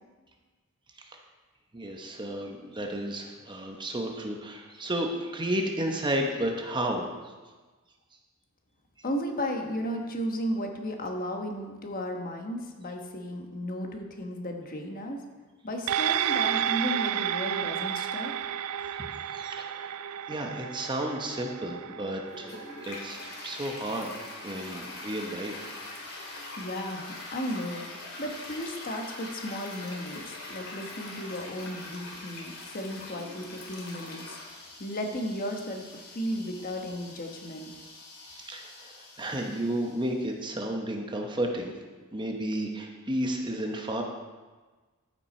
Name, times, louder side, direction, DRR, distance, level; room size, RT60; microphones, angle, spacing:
voice 1, 1.7-7.1 19.0-20.0 20.3-22.6 22.8-25.7 38.3-41.7 42.1-44.0, right 1 dB, 20° right, 2 dB, 0.9 m, -32 dB
voice 2, 9.0-15.2 15.6-18.3 26.6-27.8 28.2-34.5 34.8-37.7, equal, 40° left, 3 dB, 1.2 m, -34 dB
sound 1, 15.9-24.6 24.9-25.0, right 10 dB, 75° right, 0.3 m, -32 dB
Toilet flush, 22.3-40.2, left 2 dB, 70° left, 2.3 m, -43 dB
14.0 x 5.9 x 4.3 m, 1.3 s
head